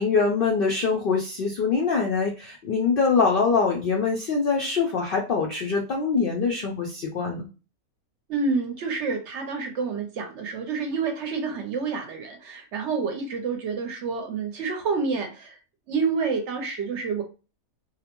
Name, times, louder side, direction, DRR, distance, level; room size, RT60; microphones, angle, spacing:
voice 1, 0.0-7.5, left 5 dB, 75° left, 0 dB, 0.5 m, -24 dB
voice 2, 8.3-15.6 15.9-17.2, right 4 dB, 65° right, 4 dB, 0.8 m, -28 dB
2.6 x 2.0 x 2.9 m, 0.32 s
omnidirectional pair, 1.5 m